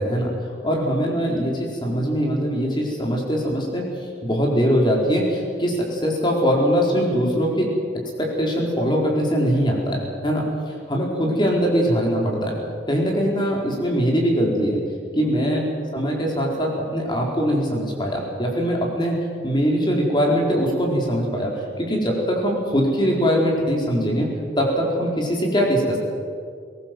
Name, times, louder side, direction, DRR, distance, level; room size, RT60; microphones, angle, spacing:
voice 1, 0.0-0.3 0.6-3.9 4.2-7.7 8.2-12.5 12.9-14.8 15.1-21.5 21.8-24.3 24.6-26.0, equal, 25° left, -1 dB, 4.3 m, -22 dB
21.5 x 18.5 x 7.8 m, 2.2 s
head